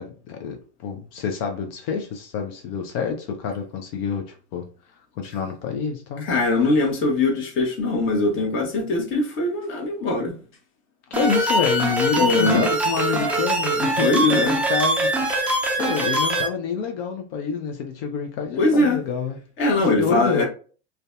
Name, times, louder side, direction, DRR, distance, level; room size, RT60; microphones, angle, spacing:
voice 1, 0.0-4.7 5.2-6.3 11.1-15.5 15.8-19.4 19.8-20.4, left 6 dB, 55° left, 0.6 m, -27 dB
voice 2, 6.2-10.3 12.2-12.7 14.0-14.5 18.6-19.0 19.6-20.5, left 2 dB, 35° left, 0.9 m, -21 dB
sound 1, 11.1-16.5, right 1 dB, 5° right, 0.3 m, -22 dB
2.5 x 2.2 x 2.3 m
hypercardioid pair, 105°, 35 cm